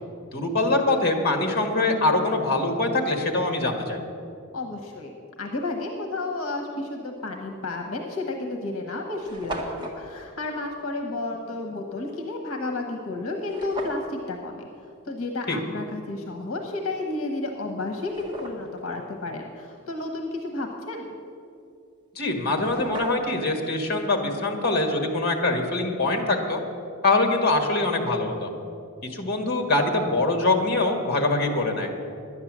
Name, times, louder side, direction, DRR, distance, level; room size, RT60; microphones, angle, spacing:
voice 1, 0.3-4.0 15.5-15.6 22.1-26.6 27.0-28.5 29.1-31.9, left 2 dB, 50° left, 4 dB, 1.6 m, -23 dB
voice 2, 4.5-14.7 15.0-21.2, left 2 dB, 75° left, 2 dB, 1.1 m, -32 dB
sound 1, 7.6-7.8 8.5-8.6 8.8-8.9 9.1-10.0 13.4-14.1 17.0-17.1 17.7-18.8 22.2-22.3 22.5-23.5, right 1 dB, 20° right, 1.5 m, -37 dB
11.0 x 9.7 x 7.4 m, 2.5 s
head